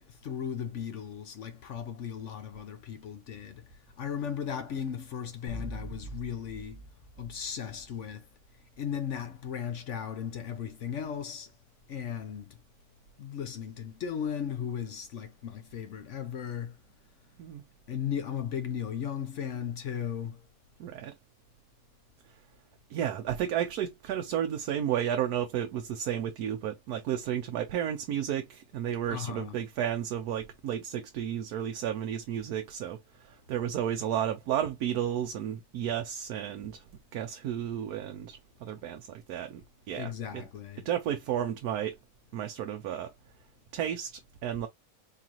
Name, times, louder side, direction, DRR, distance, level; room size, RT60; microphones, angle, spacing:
voice 1, 0.0-3.6 4.0-6.8 7.2-8.2 8.8-11.5 11.9-12.6 13.2-16.8 17.9-20.4 29.1-29.5 39.9-40.9, left 8 dB, 65° left, 0.8 m, -36 dB
sound 1, 5.5-8.3, equal, 90° left, 1.4 m, -43 dB
voice 2, 20.8-21.1 22.9-36.8 37.1-39.6 39.9-40.5 40.8-42.0 42.3-43.1 43.7-44.7, right 10 dB, 80° right, 1.1 m, -32 dB
4.5 x 2.4 x 2.8 m
omnidirectional pair, 1.6 m